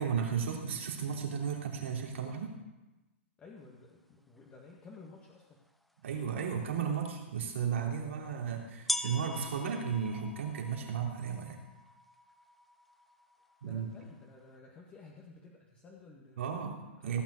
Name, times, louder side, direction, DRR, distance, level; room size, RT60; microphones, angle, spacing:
voice 1, 0.0-2.5 6.0-11.6 13.6-13.9 16.4-17.2, right 7 dB, 75° right, 0 dB, 3.3 m, -34 dB
voice 2, 3.4-5.6 13.6-16.6 17.0-17.2, left 3 dB, 20° left, -1 dB, 1.8 m, -54 dB
sound 1, 4.9-5.0 5.8-5.9 7.6-7.7 8.9-14.5, left 1 dB, ahead, 0.6 m, -42 dB
16.0 x 6.1 x 8.3 m, 1.1 s
hypercardioid pair, 125°, 7 cm